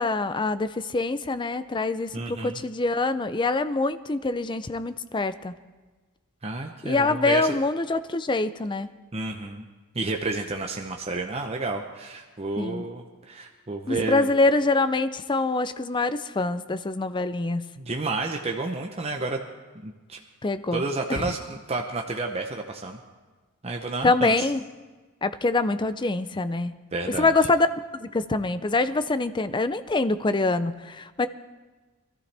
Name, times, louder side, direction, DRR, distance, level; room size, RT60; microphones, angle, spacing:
voice 1, 0.0-5.5 6.8-8.9 12.6-12.9 13.9-17.6 20.4-20.8 21.1-21.3 24.0-24.6 25.2-26.7 27.2-27.7 27.9-31.3, left 3 dB, 20° left, 12 dB, 0.4 m, -25 dB
voice 2, 2.1-2.6 6.4-7.5 9.1-9.7 9.9-14.3 17.8-19.4 19.8-20.2 20.7-23.0 23.6-24.5 26.9-27.3, right 3 dB, 25° right, 3 dB, 0.7 m, -30 dB
22.5 x 14.0 x 3.4 m, 1.3 s
head